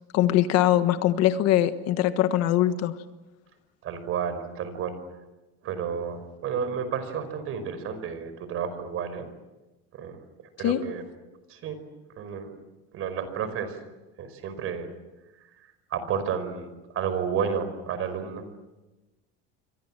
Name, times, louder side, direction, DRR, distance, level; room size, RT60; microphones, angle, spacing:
voice 1, 0.1-2.9 10.6-10.8, left 12 dB, 50° left, 10 dB, 1.5 m, -22 dB
voice 2, 3.8-5.0 5.6-9.3 10.0-10.2 10.6-11.0 11.5-11.8 12.2-12.5 12.9-13.8 14.2-14.9 15.9-16.7 16.9-18.4, right 7 dB, 45° right, 11 dB, 5.1 m, -31 dB
29.0 x 24.5 x 7.6 m, 1.1 s
cardioid pair, 145°, 31 cm